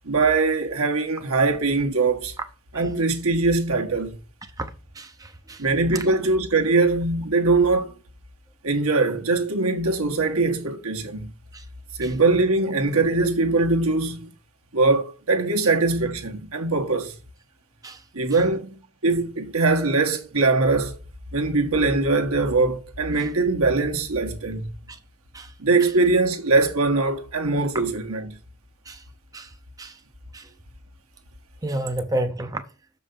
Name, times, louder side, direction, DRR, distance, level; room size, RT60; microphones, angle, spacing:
voice 1, 0.0-2.3 2.7-4.2 5.6-7.9 8.6-11.3 12.0-14.4 14.7-17.2 18.1-21.0 21.3-24.7 25.6-28.4, right 3 dB, 70° right, 1.4 m, -22 dB
voice 2, 4.9-5.6 11.5-11.6 12.0-12.1 17.8-18.0 18.3-18.4 24.9-25.0 25.3-25.5 28.9-29.0 29.3-29.5 29.8-30.0 30.3-30.5 31.6-32.6, right 1 dB, 15° right, 0.7 m, -30 dB
6.7 x 5.4 x 6.9 m
head